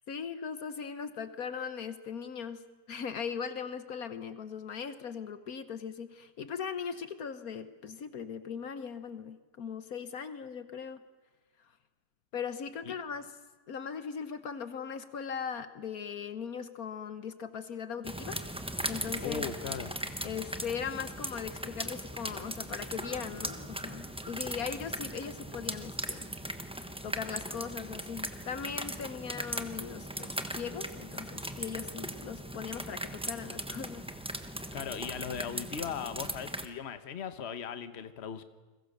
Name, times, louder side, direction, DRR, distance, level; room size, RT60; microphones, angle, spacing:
voice 1, 0.1-2.6 2.9-11.0 12.3-13.3 13.7-18.4 18.9-19.4 20.2-26.3 27.0-34.1, left 6 dB, 65° left, 11 dB, 1.4 m, -39 dB
sound 1, 18.0-36.7, right 1 dB, 5° right, 1.0 m, -39 dB
voice 2, 19.2-19.9 34.7-38.4, left 7 dB, 45° left, 11 dB, 1.3 m, -38 dB
30.0 x 22.0 x 6.7 m, 1.3 s
omnidirectional pair, 1.7 m